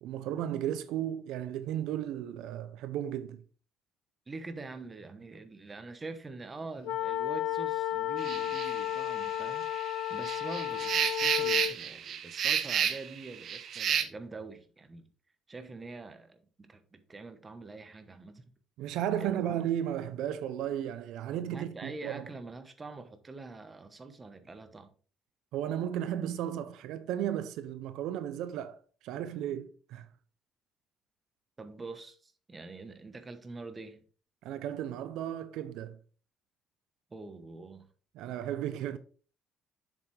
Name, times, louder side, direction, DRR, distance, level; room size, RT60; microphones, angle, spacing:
voice 1, 0.0-3.4 18.8-22.3 25.5-28.8 29.0-30.1 34.4-36.0 38.1-39.0, right 10 dB, 80° right, 0.6 m, -34 dB
voice 2, 4.3-9.7 10.1-15.1 15.5-18.4 19.2-19.6 21.5-24.9 31.6-34.0 37.1-37.9, right 3 dB, 20° right, 1.1 m, -45 dB
sound 1, 6.8-11.8, left 12 dB, 85° left, 0.5 m, -33 dB
sound 2, 8.2-14.0, right 8 dB, 50° right, 0.9 m, -32 dB
7.2 x 7.0 x 3.3 m
cardioid pair, 145°, 0 cm